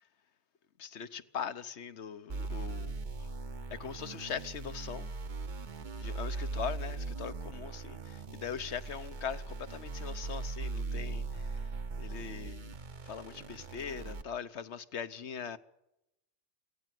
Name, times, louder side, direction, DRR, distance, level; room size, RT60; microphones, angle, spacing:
voice 1, 0.8-3.3 3.7-5.1 6.0-11.7 12.0-12.7 13.0-15.6, left 7 dB, 75° left, 1.2 m, -41 dB
sound 1, 2.3-14.2, right 3 dB, 45° right, 1.0 m, -39 dB
23.0 x 17.0 x 7.7 m
omnidirectional pair, 1.2 m